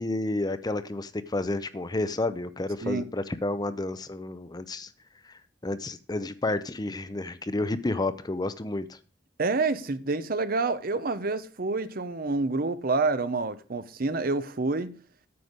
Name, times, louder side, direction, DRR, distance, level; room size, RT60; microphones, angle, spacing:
voice 1, 0.0-4.9 5.2-9.0, left 2 dB, 20° left, 0.6 m, -31 dB
voice 2, 9.4-14.9, right 3 dB, 55° right, 0.8 m, -28 dB
9.5 x 7.8 x 5.1 m
head